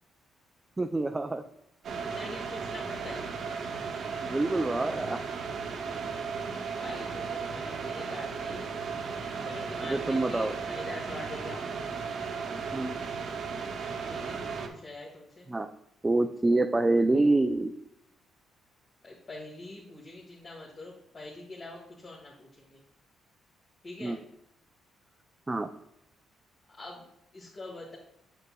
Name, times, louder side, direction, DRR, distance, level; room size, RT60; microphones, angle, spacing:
voice 1, 0.8-1.4 4.2-5.2 9.8-10.6 12.7-13.0 15.5-15.7 16.0-17.7 24.0-24.2 25.5-25.7, right 2 dB, 20° right, 6 dB, 0.3 m, -26 dB
sound 1, 1.8-14.7, right 5 dB, 65° right, 0.8 m, -35 dB
voice 2, 2.0-3.2 6.8-8.6 9.4-11.7 14.1-15.5 19.0-22.8 23.8-24.2 26.8-27.1 27.3-28.0, left 2 dB, 40° left, -5 dB, 1.5 m, -44 dB
7.1 x 6.7 x 2.3 m, 0.82 s
cardioid pair, 90°, 0 cm